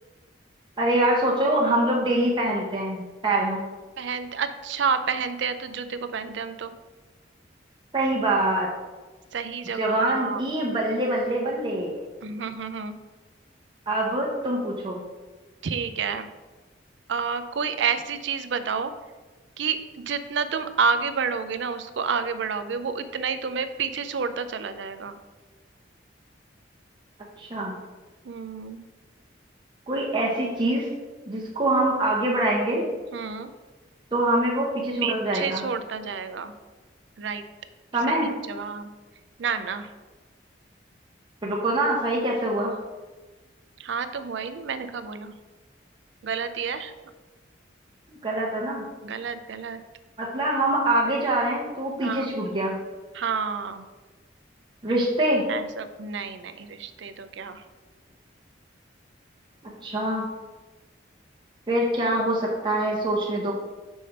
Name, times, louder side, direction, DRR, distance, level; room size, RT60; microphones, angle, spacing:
voice 1, 0.8-3.6 7.9-8.7 9.8-12.1 13.9-15.0 27.4-27.8 29.9-30.9 31.3-32.8 34.1-35.6 37.9-38.3 41.4-42.8 48.1-48.9 50.2-52.8 54.8-55.4 59.8-60.3 61.7-63.5, right 1 dB, 25° right, -4 dB, 0.7 m, -24 dB
voice 2, 4.0-6.7 9.3-10.4 12.2-13.0 15.6-16.3 17.1-18.9 19.6-25.2 28.2-28.9 33.1-33.5 35.0-36.5 37.2-37.4 38.0-38.9 39.4-39.9 43.8-45.3 46.2-46.9 49.0-49.8 52.0-52.3 53.1-53.9 55.5-57.6, right 6 dB, 70° right, 10 dB, 0.4 m, -29 dB
5.3 x 3.3 x 5.6 m, 1.3 s
head